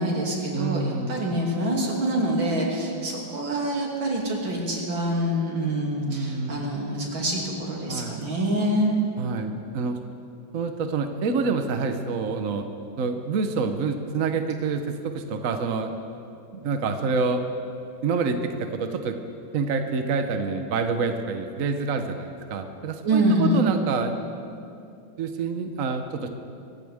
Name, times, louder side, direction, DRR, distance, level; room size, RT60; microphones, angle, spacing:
voice 1, 0.0-9.0 23.0-23.7, right 1 dB, 70° right, -2 dB, 3.4 m, -25 dB
voice 2, 0.5-1.2 6.1-6.7 7.9-8.1 9.2-10.0 10.5-12.7 13.0-16.0 16.5-17.4 18.0-19.2 19.5-24.1 25.2-26.3, right 4 dB, 55° right, 6 dB, 1.0 m, -27 dB
25.5 x 15.0 x 3.6 m, 2.6 s
omnidirectional pair, 2.2 m